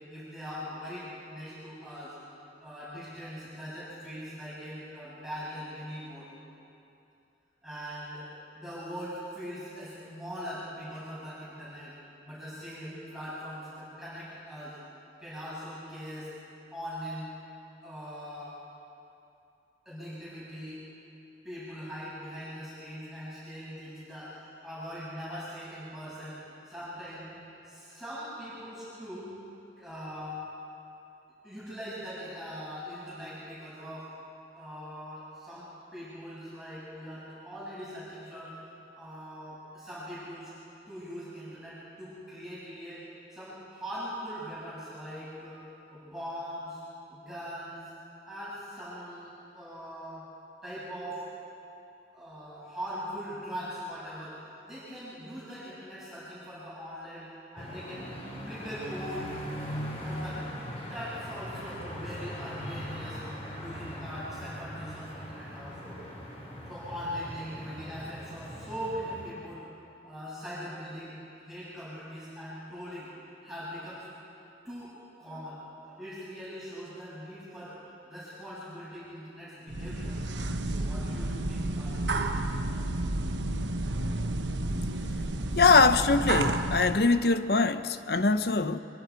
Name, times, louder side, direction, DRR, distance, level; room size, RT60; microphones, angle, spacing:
voice 1, 0.1-2.1 2.6-6.3 7.6-8.3 8.5-11.9 12.2-14.8 15.2-16.3 16.7-17.3 17.8-18.6 19.8-20.8 21.4-27.3 27.6-29.3 29.8-30.5 31.4-34.1 34.5-38.5 38.9-40.5 40.9-43.0 43.3-45.6 45.9-46.8 47.1-47.9 48.3-50.2 50.6-51.2 52.1-58.0 58.5-59.3 60.0-60.4 60.7-63.2 63.5-66.0 66.7-69.6 70.0-73.1 73.4-74.1 74.6-74.9 75.2-77.8 78.1-80.2 80.7-82.3 82.7-82.9, equal, 5° right, -11 dB, 6.8 m, -41 dB
sound 1, 57.6-69.3, equal, 35° left, 3.3 m, -40 dB
sound 2, 79.7-87.0, right 2 dB, 90° right, 1.1 m, -31 dB
voice 2, 85.6-88.8, left 4 dB, 60° left, 11 dB, 0.7 m, -23 dB
25.0 x 23.0 x 4.7 m, 2.7 s
head